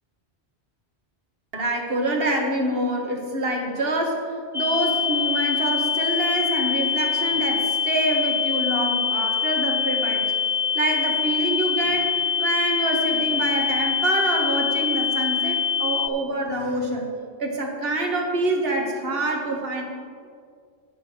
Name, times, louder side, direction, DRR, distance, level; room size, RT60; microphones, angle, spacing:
voice 1, 1.5-10.3 10.7-17.1 17.4-19.9, right 2 dB, 60° right, 1 dB, 1.6 m, -26 dB
sound 1, 4.5-16.1, left 7 dB, 5° right, 0.6 m, -24 dB
9.1 x 6.1 x 7.9 m, 2.2 s
omnidirectional pair, 1.1 m